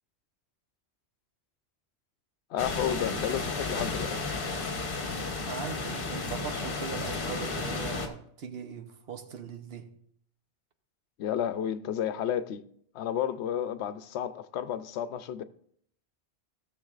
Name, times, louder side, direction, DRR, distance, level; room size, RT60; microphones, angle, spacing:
voice 1, 2.5-4.2 11.2-12.6 12.9-15.4, left 9 dB, 80° left, 0.9 m, -31 dB
sound 1, 2.6-8.1, left 3 dB, 55° left, 1.2 m, -33 dB
voice 2, 5.4-9.9, right 7 dB, 65° right, 1.0 m, -40 dB
16.5 x 6.8 x 2.4 m
omnidirectional pair, 1.1 m